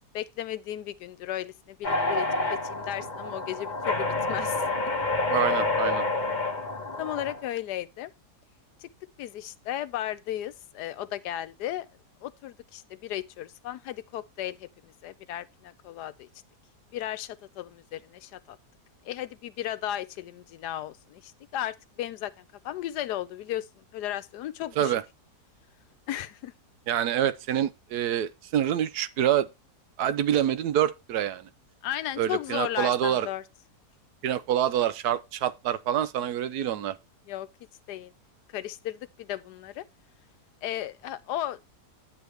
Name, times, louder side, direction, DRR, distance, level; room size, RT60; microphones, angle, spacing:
voice 1, 0.1-4.6 7.0-8.1 8.8-8.9 9.2-11.9 12.2-16.3 16.9-18.6 19.0-23.6 23.9-25.0 26.1-26.5 31.8-33.4 37.3-37.5 37.9-38.1 38.5-39.8 40.6-41.6, left 12 dB, 80° left, 1.2 m, -35 dB
sound 1, 1.8-7.4, left 2 dB, 30° left, 1.1 m, -28 dB
voice 2, 5.3-6.1 24.8-25.0 26.9-29.5 30.0-31.5 32.2-33.3 34.2-36.9, right 10 dB, 75° right, 1.2 m, -26 dB
9.6 x 7.9 x 3.3 m
omnidirectional pair, 1.7 m